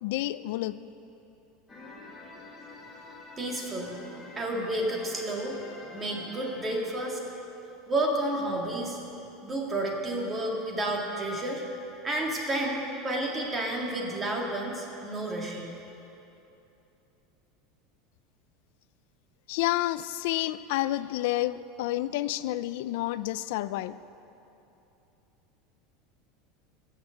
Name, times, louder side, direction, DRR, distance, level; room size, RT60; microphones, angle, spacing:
voice 1, 0.0-0.8 19.5-24.0, left 15 dB, 60° left, 15 dB, 0.5 m, -29 dB
sound 1, 1.7-6.9, left 2 dB, 10° left, 1.9 m, -47 dB
voice 2, 3.4-4.0 4.3-5.6 5.9-7.2 7.9-9.0 9.4-11.6 12.0-15.8, right 1 dB, 15° right, 0 dB, 1.9 m, -31 dB
17.0 x 9.3 x 7.6 m, 2.9 s
supercardioid pair, 175°, 0 cm